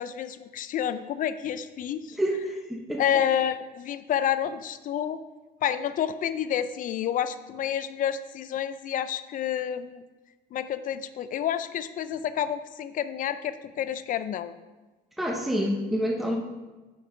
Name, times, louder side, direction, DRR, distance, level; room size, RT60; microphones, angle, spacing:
voice 1, 0.0-2.2 3.0-5.2 5.6-10.0 10.5-14.5, left 9 dB, 50° left, 13 dB, 0.5 m, -29 dB
voice 2, 2.2-3.0 15.2-16.4, equal, ahead, 1 dB, 0.7 m, -27 dB
5.5 x 5.5 x 4.9 m, 1.2 s
cardioid pair, 110°, 17 cm